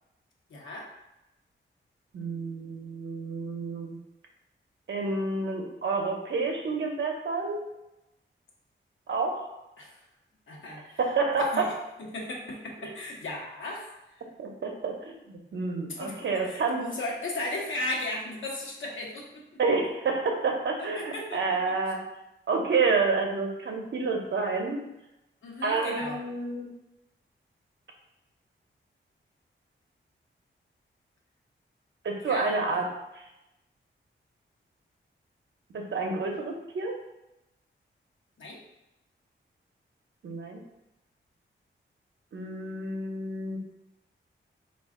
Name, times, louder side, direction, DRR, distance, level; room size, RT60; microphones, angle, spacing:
voice 1, 0.5-0.9 9.8-10.0 10.5-11.0 11.4-11.7 12.0-14.2 15.9-19.6 20.8-21.4 25.4-26.2 32.2-32.5 38.4-38.6, left 2 dB, 75° left, -3 dB, 0.9 m, -36 dB
voice 2, 2.1-4.0 4.9-7.7 9.1-9.5 11.0-11.7 12.8-12.9 14.4-16.9 19.6-22.0 22.5-24.8 25.6-26.7 32.0-32.9 33.1-33.2 35.7-37.0 40.2-40.6 42.3-43.6, right 4 dB, 65° right, 1 dB, 0.7 m, -29 dB
4.1 x 2.4 x 3.6 m, 0.93 s
wide cardioid pair, 115°, 21 cm